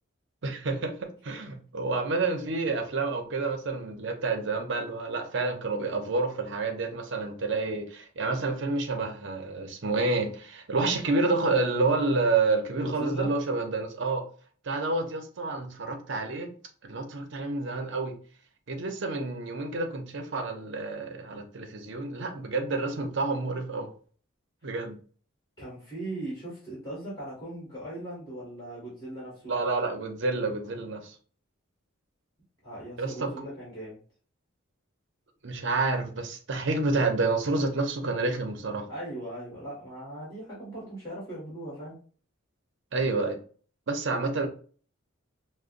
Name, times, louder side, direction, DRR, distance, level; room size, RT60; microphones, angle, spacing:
voice 1, 0.4-14.3 14.6-16.5 16.8-18.2 18.7-23.9 24.6-25.0 29.5-31.1 33.0-33.3 35.4-38.8 42.9-43.4 43.9-44.5, right 3 dB, 60° right, 4 dB, 0.7 m, -29 dB
voice 2, 12.8-13.4 25.6-29.5 32.6-34.0 38.9-42.0, right 1 dB, 20° left, -7 dB, 1.7 m, -39 dB
5.0 x 2.1 x 2.5 m, 0.42 s
head